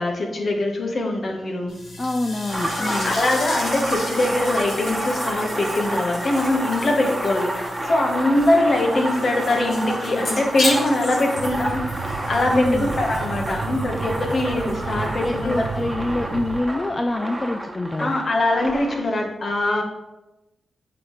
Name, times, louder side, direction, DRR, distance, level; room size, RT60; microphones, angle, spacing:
voice 1, 0.0-1.8 2.8-15.7 18.0-19.8, left 1 dB, 55° left, 2 dB, 1.2 m, -22 dB
sound 1, 1.7-15.9, left 2 dB, 80° left, 2.2 m, -35 dB
voice 2, 2.0-3.2 12.5-12.9 15.2-18.1, left 2 dB, 30° left, 5 dB, 0.4 m, -26 dB
sound 2, 2.5-19.0, right 1 dB, 15° right, 1.2 m, -30 dB
sound 3, 11.4-16.6, right 4 dB, 90° right, 0.4 m, -32 dB
7.5 x 4.0 x 3.2 m, 0.97 s
supercardioid pair, 45°, 0 cm